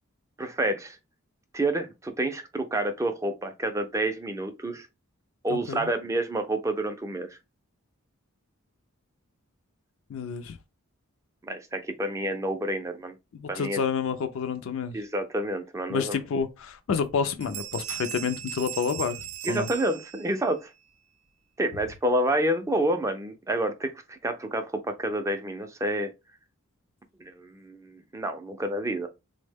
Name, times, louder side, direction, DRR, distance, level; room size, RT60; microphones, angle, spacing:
voice 1, 0.4-1.0 1.5-4.9 5.4-7.4 11.4-13.1 13.5-13.8 14.9-16.2 19.4-20.7 21.6-26.1 27.2-29.1, right 1 dB, 15° right, 0.3 m, -29 dB
voice 2, 5.5-5.9 10.1-10.6 13.3-15.0 15.9-19.2 19.5-19.7, left 6 dB, 65° left, 0.3 m, -29 dB
sound 1, 16.4-16.5 16.9-17.1 17.4-20.6, right 10 dB, 80° right, 0.6 m, -38 dB
3.4 x 2.1 x 3.4 m
head